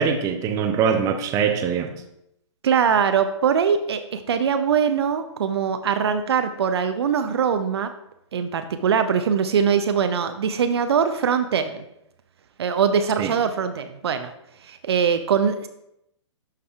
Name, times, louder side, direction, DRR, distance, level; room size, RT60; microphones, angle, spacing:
voice 1, 0.0-1.9 13.2-13.3, right 6 dB, 20° right, 6 dB, 0.6 m, -22 dB
voice 2, 2.6-7.9 8.3-11.9 12.6-14.3 14.6-15.7, right 7 dB, 60° right, 8 dB, 0.5 m, -22 dB
11.5 x 4.8 x 2.3 m, 0.81 s
figure-of-eight pair, 120°, 15 cm